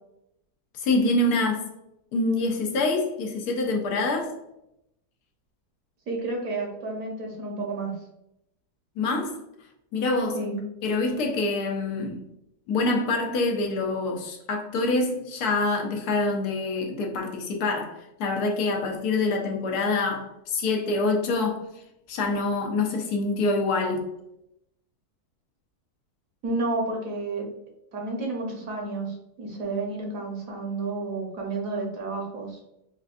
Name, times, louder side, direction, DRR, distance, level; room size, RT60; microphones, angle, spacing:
voice 1, 0.8-1.7 2.1-4.3 9.0-9.4 9.9-10.4 10.8-12.2 12.7-21.6 22.1-24.1, left 2 dB, 80° left, 1.2 m, -26 dB
voice 2, 6.1-7.9 10.3-10.6 26.4-27.5 27.9-32.6, right 3 dB, 60° right, 1.2 m, -31 dB
4.3 x 2.4 x 2.4 m
omnidirectional pair, 1.7 m